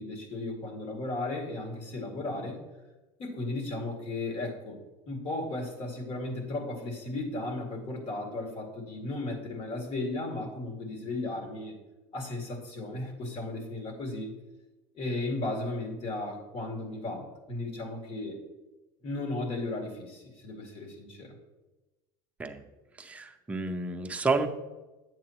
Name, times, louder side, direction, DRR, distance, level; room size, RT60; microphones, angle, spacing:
voice 1, 0.0-2.6 3.2-4.8 5.1-11.7 12.1-14.3 15.0-18.4 19.0-21.3, left 2 dB, 45° left, 1 dB, 2.2 m, -35 dB
voice 2, 23.0-24.5, right 3 dB, 10° right, 5 dB, 0.6 m, -30 dB
9.9 x 7.5 x 2.9 m, 1.1 s
cardioid pair, 145°, 13 cm